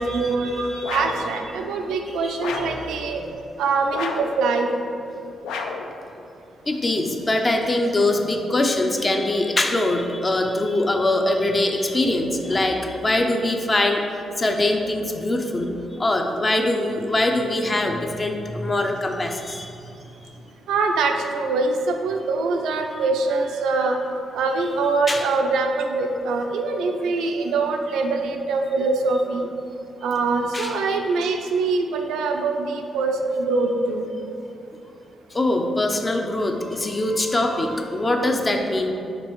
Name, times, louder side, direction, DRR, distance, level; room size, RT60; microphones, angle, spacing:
voice 1, 0.0-3.2 3.6-4.7 20.7-24.0 24.3-29.5 30.0-34.1, right 3 dB, 85° right, 4 dB, 0.4 m, -23 dB
voice 2, 0.5-0.8 2.2-2.4 6.7-14.1 14.4-19.8 22.8-22.9 25.1-25.3 30.5-30.7 35.3-38.9, left 1 dB, 30° left, 3 dB, 0.5 m, -23 dB
sound 1, 0.8-1.3 2.4-2.9 3.9-4.4 5.4-5.9, left 5 dB, 90° left, 0.3 m, -30 dB
5.2 x 3.3 x 3.0 m, 2.7 s
cardioid pair, 75°, 0 cm